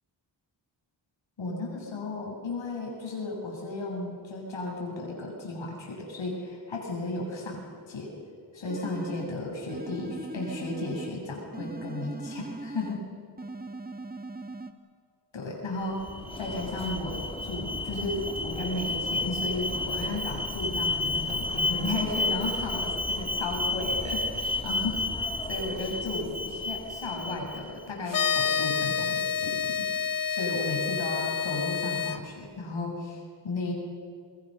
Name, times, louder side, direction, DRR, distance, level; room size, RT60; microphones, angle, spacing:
voice 1, 1.4-8.1 8.5-13.0 15.3-16.1 16.3-29.9 30.3-33.7, left 2 dB, 85° left, -1 dB, 7.7 m, -34 dB
sound 1, 8.7-9.4 9.7-11.2 11.5-13.0 13.4-14.7, right 2 dB, 20° right, 1.6 m, -39 dB
Alarm, 15.8-27.9, left 2 dB, 10° left, 1.5 m, -31 dB
sound 2, 28.1-32.2, left 7 dB, 45° left, 1.1 m, -28 dB
29.0 x 21.5 x 6.8 m, 2.2 s
cardioid pair, 80°, 45 cm